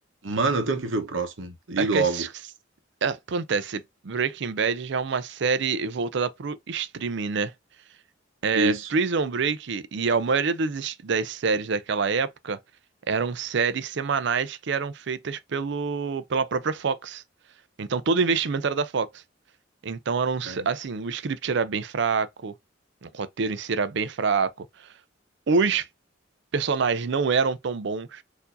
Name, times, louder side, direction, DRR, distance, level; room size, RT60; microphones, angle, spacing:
voice 1, 0.2-2.2 8.5-8.9 20.5-20.7, right 3 dB, 80° right, 0.9 m, -26 dB
voice 2, 1.8-2.3 3.0-7.5 8.4-12.6 13.1-17.2 17.8-19.2 19.8-22.5 23.0-24.9 25.5-25.9 26.5-28.2, right 5 dB, 65° right, 0.5 m, -26 dB
4.5 x 2.7 x 2.6 m
head